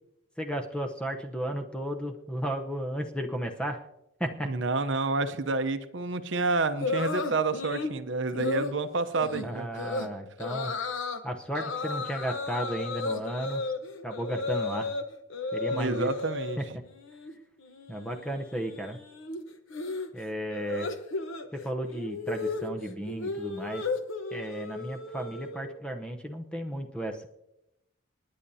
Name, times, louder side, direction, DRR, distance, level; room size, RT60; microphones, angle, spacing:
voice 1, 0.4-3.8 4.2-4.5 9.3-10.7 11.2-13.7 14.0-14.9 15.5-16.1 16.6-16.8 17.9-19.0 20.1-20.9 21.5-23.9 24.3-27.3, right 1 dB, 5° left, 4 dB, 0.7 m, -34 dB
voice 2, 4.4-9.7 15.7-16.6, right 3 dB, 60° right, 9 dB, 0.7 m, -29 dB
sound 1, 6.8-7.9 8.3-8.7 9.2-9.4 9.8-10.1 10.4-11.2 11.5-15.0 15.3-16.6 16.9-17.3 17.6-25.8, left 3 dB, 70° left, 1.0 m, -34 dB
28.5 x 10.0 x 2.8 m, 0.89 s
head